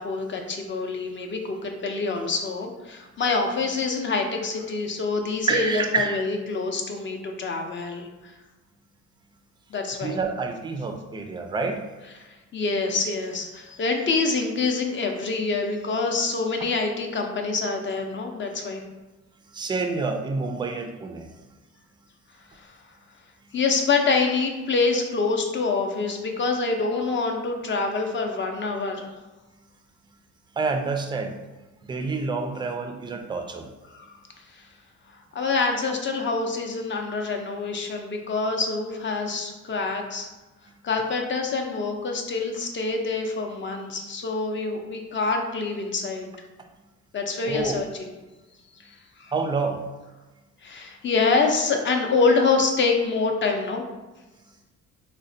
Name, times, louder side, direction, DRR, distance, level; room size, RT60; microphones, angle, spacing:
voice 1, 0.0-8.3 9.7-10.2 12.2-18.8 22.5-22.7 23.5-29.1 33.9-34.1 34.5-34.6 35.3-40.3 40.8-46.3 47.1-48.1 48.8-49.3 50.6-53.9, left 4 dB, 40° left, 3 dB, 0.5 m, -26 dB
voice 2, 5.5-6.2 10.0-11.8 19.5-21.3 30.6-31.4 31.8-33.7 47.5-47.8 49.3-49.8, right 4 dB, 15° right, 5 dB, 0.3 m, -28 dB
3.8 x 2.1 x 2.6 m, 1.1 s
cardioid pair, 90°, 30 cm